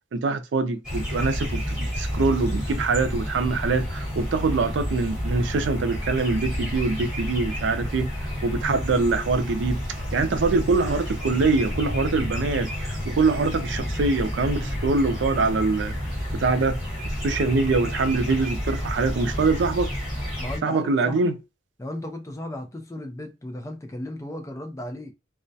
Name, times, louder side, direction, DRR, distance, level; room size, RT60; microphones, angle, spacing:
voice 1, 0.1-8.1 8.4-9.8 10.1-15.9 16.3-16.8 17.2-19.9 20.6-21.4, right 3 dB, 85° right, 0.4 m, -24 dB
sound 1, 0.8-20.6, equal, 5° right, 1.1 m, -30 dB
voice 2, 20.4-21.3 21.8-25.1, left 1 dB, 15° left, 0.4 m, -35 dB
2.2 x 2.1 x 2.6 m
head